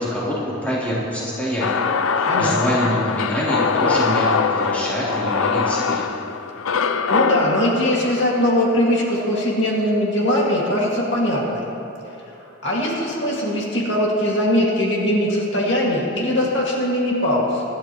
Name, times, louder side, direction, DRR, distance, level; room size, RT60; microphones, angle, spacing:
voice 1, 0.0-1.8 2.2-6.1, equal, 10° left, -9 dB, 3.4 m, -25 dB
sound 1, 1.6-9.8, left 5 dB, 85° left, 0.5 m, -23 dB
voice 2, 7.1-11.6 12.6-17.6, left 1 dB, 65° left, -3 dB, 2.2 m, -20 dB
24.5 x 11.0 x 3.1 m, 2.8 s
head